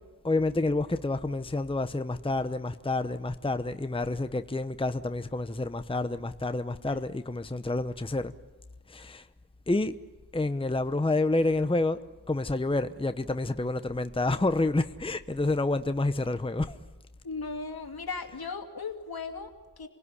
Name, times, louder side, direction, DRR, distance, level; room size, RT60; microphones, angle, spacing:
voice 1, 0.2-8.3 8.9-9.3 9.7-10.0 10.3-12.0 12.3-16.8, left 2 dB, 15° left, 0.9 m, -28 dB
voice 2, 17.2-19.9, left 4 dB, 65° left, 2.7 m, -37 dB
27.5 x 18.0 x 9.9 m
wide cardioid pair, 65°, 39 cm